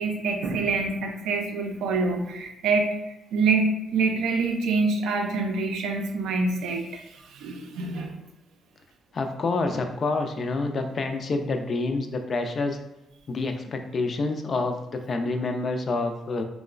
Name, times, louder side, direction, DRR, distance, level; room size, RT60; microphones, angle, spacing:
voice 1, 0.0-8.1, right 3 dB, 80° right, 3 dB, 0.4 m, -26 dB
voice 2, 9.1-12.8 13.3-16.4, left 3 dB, 45° left, 6 dB, 0.3 m, -27 dB
2.9 x 2.0 x 2.4 m, 0.91 s
cardioid pair, 90°, 0 cm